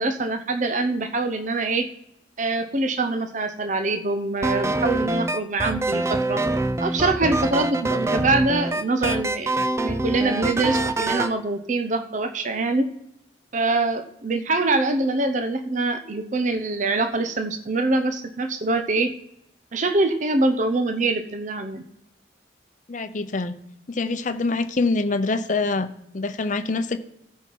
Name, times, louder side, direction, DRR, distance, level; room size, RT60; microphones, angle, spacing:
voice 1, 0.0-1.9 2.4-6.4 6.8-9.5 9.8-12.9 13.5-19.1 19.7-21.8, right 2 dB, 40° right, 8 dB, 0.7 m, -24 dB
sound 1, 4.4-11.3, right 2 dB, 15° right, 0.4 m, -25 dB
voice 2, 22.9-23.6 23.9-25.9 26.1-27.0, left 3 dB, 45° left, 10 dB, 0.7 m, -25 dB
15.0 x 5.6 x 4.6 m, 0.80 s
head